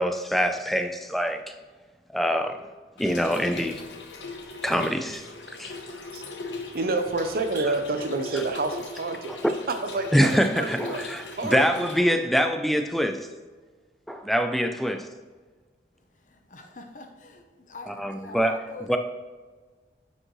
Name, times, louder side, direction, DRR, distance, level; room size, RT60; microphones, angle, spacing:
voice 1, 0.0-1.5 2.1-2.6 3.0-3.8 4.6-5.8 8.3-8.4 9.3-9.4 10.1-13.3 14.1-15.1 17.9-19.0, equal, ahead, 7 dB, 0.4 m, -25 dB
Trickle dribble / Fill (with liquid), 3.0-12.0, left 3 dB, 85° left, 1.0 m, -39 dB
voice 2, 6.7-9.4 9.7-11.0 11.3-12.2, right 3 dB, 55° right, 6 dB, 0.6 m, -29 dB
voice 3, 16.2-19.0, left 2 dB, 45° left, 4 dB, 0.8 m, -44 dB
9.7 x 5.3 x 3.1 m, 1.4 s
head